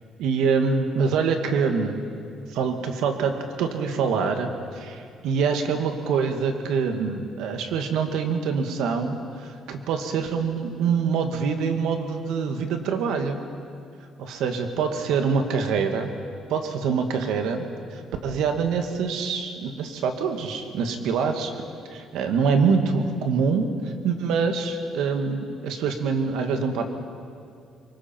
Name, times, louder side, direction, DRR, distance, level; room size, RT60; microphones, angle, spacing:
voice 1, 0.2-2.0 2.5-13.4 14.2-16.1 16.5-17.7 17.9-21.5 21.9-26.9, right 5 dB, 80° right, 5 dB, 1.9 m, -25 dB
25.5 x 23.0 x 4.5 m, 2.4 s
cardioid pair, 150°, 0 cm